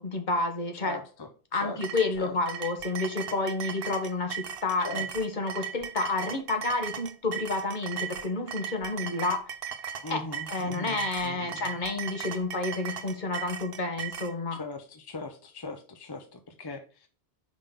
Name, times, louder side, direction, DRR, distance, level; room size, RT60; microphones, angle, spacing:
voice 1, 0.0-1.0 1.5-9.5 10.1-10.2 10.5-14.6, left 3 dB, 45° left, 5 dB, 1.2 m, -30 dB
voice 2, 0.8-1.8 2.2-2.3 4.8-5.1 10.0-11.7 14.6-17.1, left 2 dB, 25° left, 6 dB, 0.6 m, -40 dB
sound 1, 1.8-14.3, right 7 dB, 65° right, 0.8 m, -37 dB
5.1 x 3.6 x 5.7 m, 0.38 s
omnidirectional pair, 1.1 m